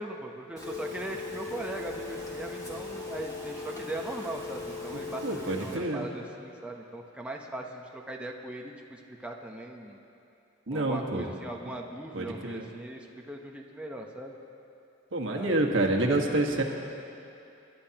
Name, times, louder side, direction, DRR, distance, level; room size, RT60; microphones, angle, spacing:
voice 1, 0.0-10.0 10.7-14.4 15.3-15.9, right 1 dB, 5° right, 0 dB, 0.8 m, -39 dB
Telephone, 0.6-5.8, left 3 dB, 20° left, 2.3 m, -39 dB
voice 2, 5.2-6.1 10.7-11.3 12.1-12.6 15.1-16.6, right 2 dB, 70° right, 1 dB, 1.4 m, -28 dB
29.0 x 12.0 x 2.9 m, 2.7 s
head